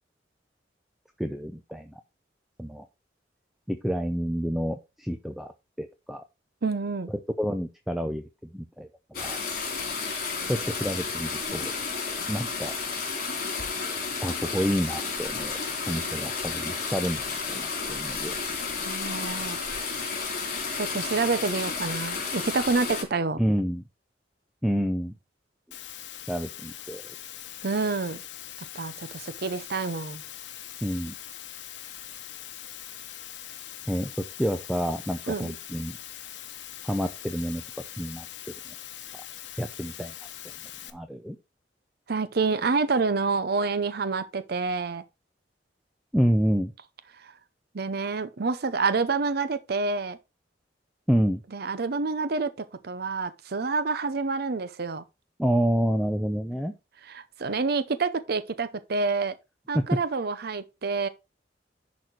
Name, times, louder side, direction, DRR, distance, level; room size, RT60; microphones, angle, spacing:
voice 1, 1.2-2.0 2.6-2.9 3.7-5.5 5.8-6.2 7.1-8.2 8.5-9.4 10.5-11.7 12.3-12.7 14.2-15.6 15.9-18.3 23.4-23.8 24.6-25.1 26.3-27.1 30.8-31.1 33.9-34.1 34.4-36.0 36.8-37.6 38.0-38.3 38.7-38.8 39.6-40.1 40.9-41.4 46.1-46.7 51.1-51.4 55.4-56.7 59.7-59.8, equal, ahead, 0.7 m, -28 dB
voice 2, 6.6-7.1 18.9-19.6 20.7-23.4 27.6-28.2 28.7-30.2 35.3-35.5 42.1-45.0 47.2-47.3 47.7-50.2 51.5-52.5 52.8-55.0 57.1-59.3 59.7-61.1, right 4 dB, 60° right, 0.7 m, -28 dB
sound 1, 9.1-23.0, left 4 dB, 55° left, 3.2 m, -32 dB
Water, 25.7-40.9, left 11 dB, 85° left, 1.0 m, -42 dB
11.0 x 4.3 x 4.6 m
head